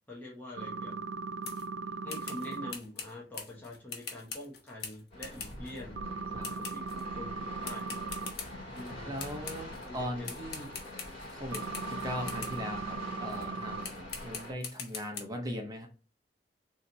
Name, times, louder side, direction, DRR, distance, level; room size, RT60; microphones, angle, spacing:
voice 1, 0.1-1.0 2.0-6.0 6.3-8.1 8.7-9.2 9.8-10.3, left 1 dB, 10° left, -5 dB, 0.9 m, -45 dB
sound 1, 0.6-2.7 6.0-8.3 11.5-13.9, right 4 dB, 90° right, 0.4 m, -38 dB
sound 2, 1.4-1.7 2.1-5.8 6.4-7.1 7.6-8.9 9.2-9.9 10.2-12.6 13.3-13.5 13.8-15.2, left 6 dB, 60° left, 0.9 m, -43 dB
sound 3, 5.1-14.5, left 1 dB, 35° left, 2.0 m, -44 dB
voice 2, 9.0-10.8 11.3-15.9, equal, 20° right, 2 dB, 0.7 m, -39 dB
3.2 x 2.9 x 3.9 m, 0.35 s
head